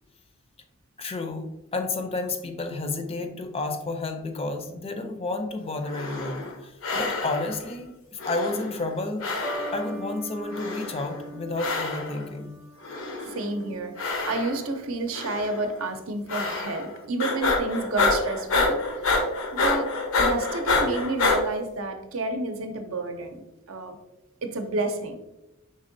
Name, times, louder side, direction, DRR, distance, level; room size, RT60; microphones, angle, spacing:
voice 1, 1.0-1.5 1.7-9.3 9.7-12.5, left 2 dB, 30° left, 6 dB, 0.5 m, -31 dB
sound 1, 5.8-6.5 6.8-7.6 8.2-9.0 9.2-10.0 10.5-11.2 11.6-12.2 12.8-13.5 14.0-14.7 15.1-15.6 16.3-16.9 17.2-21.4, left 3 dB, 80° left, 0.8 m, -27 dB
sound 2, 9.4-15.9 16.8-17.2, right 1 dB, 10° right, 0.6 m, -42 dB
voice 2, 13.2-19.1 19.5-23.4 23.7-24.0 24.4-25.2, right 2 dB, 70° right, 6 dB, 0.6 m, -30 dB
5.3 x 3.6 x 2.6 m, 0.95 s
head